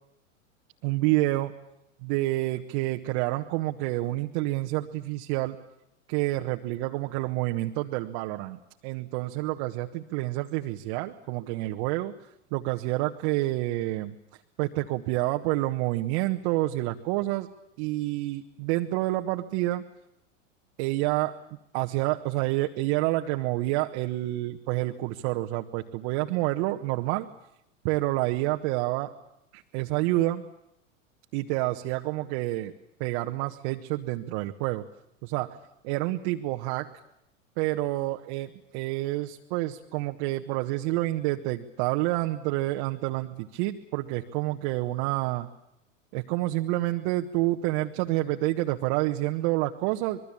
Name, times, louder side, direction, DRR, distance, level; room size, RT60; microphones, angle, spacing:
voice 1, 0.8-1.5 2.0-5.6 6.1-12.1 12.5-14.2 14.6-17.5 17.8-19.8 20.8-21.3 21.7-27.3 27.8-29.1 29.5-30.4 31.3-32.7 33.0-34.8 35.2-35.6 35.8-36.9 37.6-45.5 46.1-50.2, right 17 dB, 50° right, 3 dB, 1.4 m, -28 dB
25.5 x 22.0 x 8.8 m, 0.81 s
hypercardioid pair, 100°, 39 cm